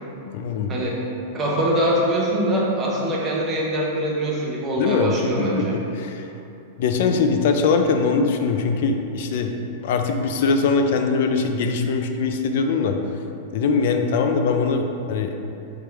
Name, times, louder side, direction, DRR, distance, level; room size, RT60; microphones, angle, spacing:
voice 1, 0.3-0.7 4.8-6.3 6.8-13.0 13.5-15.4, left 4 dB, 55° left, 5 dB, 0.3 m, -22 dB
voice 2, 1.3-5.8, equal, 20° right, -4 dB, 0.7 m, -23 dB
3.4 x 3.1 x 4.7 m, 2.9 s
supercardioid pair, 165°, 0 cm